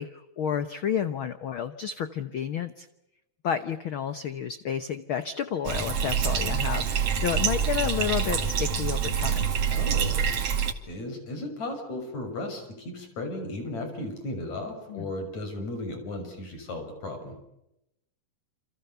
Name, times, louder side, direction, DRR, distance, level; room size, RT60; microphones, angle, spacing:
voice 1, 0.0-2.9 3.4-9.5 14.9-15.1, left 8 dB, 70° left, 11 dB, 1.2 m, -31 dB
Bathtub (filling or washing), 5.7-10.7, right 7 dB, 45° right, 2.9 m, -26 dB
voice 2, 9.7-10.2 10.9-17.4, left 2 dB, 55° left, 6 dB, 7.5 m, -35 dB
28.5 x 27.5 x 7.0 m, 0.85 s
omnidirectional pair, 3.9 m